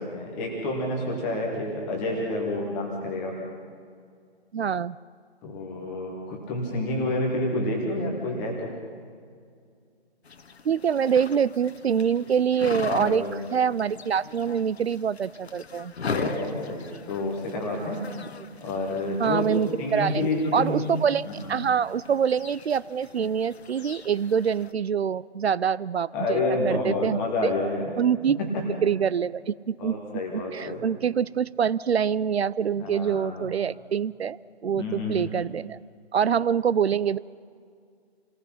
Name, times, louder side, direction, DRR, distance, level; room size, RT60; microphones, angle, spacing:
voice 1, 0.0-3.4 5.4-8.7 12.8-13.4 16.0-18.0 18.6-19.5 19.8-20.9 21.4-21.5 26.1-27.9 28.3-28.6 29.8-30.8 32.8-33.5 34.8-35.2, left 2 dB, 5° left, -2 dB, 0.7 m, -29 dB
voice 2, 4.5-5.0 10.6-13.2 13.5-15.9 19.2-21.2 21.5-27.5 28.0-29.9 30.3-34.4 34.6-35.8 36.1-37.2, right 7 dB, 70° right, 20 dB, 0.6 m, -25 dB
sound 1, 10.2-24.7, left 5 dB, 70° left, 1.2 m, -40 dB
27.0 x 18.0 x 5.8 m, 2.2 s
figure-of-eight pair, 160°, 33 cm